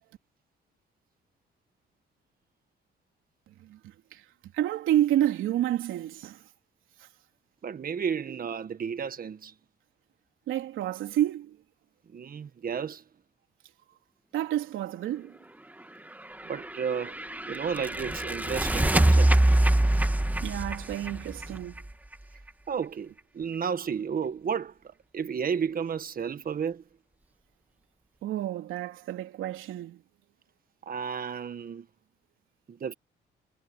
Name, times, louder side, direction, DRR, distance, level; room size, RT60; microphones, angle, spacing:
voice 1, 3.5-6.5 7.0-7.1 10.5-11.6 14.3-15.4 20.4-21.9 28.2-30.0, right 12 dB, 85° right, 3.4 m, -30 dB
voice 2, 7.6-9.5 12.1-13.0 16.4-17.2 17.5-19.3 22.7-24.7 25.1-26.8 30.8-31.9 32.7-32.9, right 7 dB, 45° right, 1.6 m, -32 dB
sound 1, 16.4-22.1, right 1 dB, 10° right, 1.8 m, -24 dB
cardioid pair, 90°, 20 cm